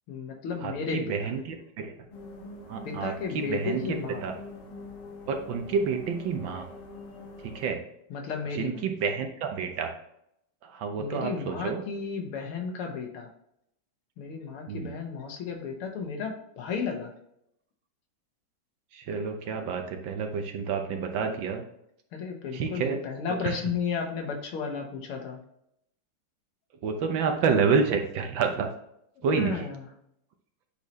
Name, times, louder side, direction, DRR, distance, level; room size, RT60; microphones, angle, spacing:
voice 1, 0.1-1.3 2.8-4.3 8.1-8.8 11.0-13.3 14.2-17.1 22.1-25.4 29.3-29.8, left 5 dB, 80° left, 3 dB, 2.0 m, -33 dB
voice 2, 0.6-1.9 2.7-4.3 5.3-6.7 7.5-7.8 8.5-9.9 10.6-11.8 14.7-14.9 18.9-21.6 22.5-23.0 23.4-23.6 26.8-28.7 29.2-29.7, right 5 dB, 70° right, 5 dB, 1.4 m, -29 dB
sound 1, 2.1-7.7, left 3 dB, 55° left, 2.0 m, -44 dB
8.3 x 4.3 x 3.1 m, 0.75 s
omnidirectional pair, 2.4 m